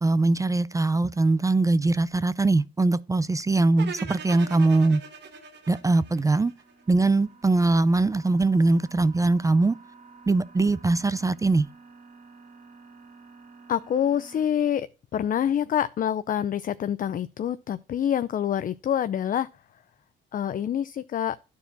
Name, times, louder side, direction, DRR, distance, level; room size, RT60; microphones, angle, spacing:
voice 1, 0.0-5.0 5.7-6.5 6.9-9.8 10.3-11.7, right 2 dB, 15° right, 0.4 m, -22 dB
sound 1, 3.8-6.9, right 6 dB, 60° right, 1.7 m, -41 dB
sound 2, 5.8-14.4, right 4 dB, 35° right, 2.2 m, -51 dB
voice 2, 13.7-14.9 15.1-19.5 20.3-21.4, left 9 dB, 45° left, 0.4 m, -26 dB
11.0 x 4.7 x 3.9 m
cardioid pair, 90°, 20 cm